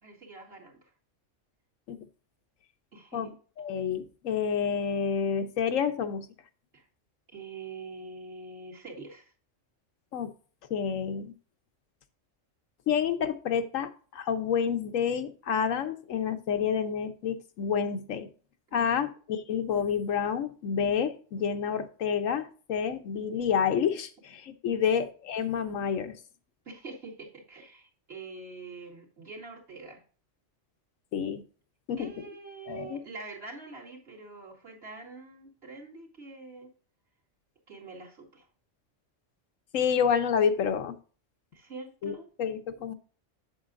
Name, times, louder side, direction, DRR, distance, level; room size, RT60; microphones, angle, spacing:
voice 1, 0.0-0.9 2.9-3.4 6.7-6.8 7.3-9.3 18.7-19.1 24.7-24.8 26.7-30.0 32.0-36.7 37.7-38.5 41.5-42.3, right 3 dB, 55° right, 2.6 m, -45 dB
voice 2, 3.6-6.3 10.1-10.3 10.7-11.3 12.9-18.3 18.7-26.2 31.1-31.4 31.9-32.1 32.7-33.0 39.7-40.9 42.0-42.9, left 7 dB, 90° left, 1.2 m, -29 dB
7.9 x 7.9 x 2.5 m
omnidirectional pair, 1.3 m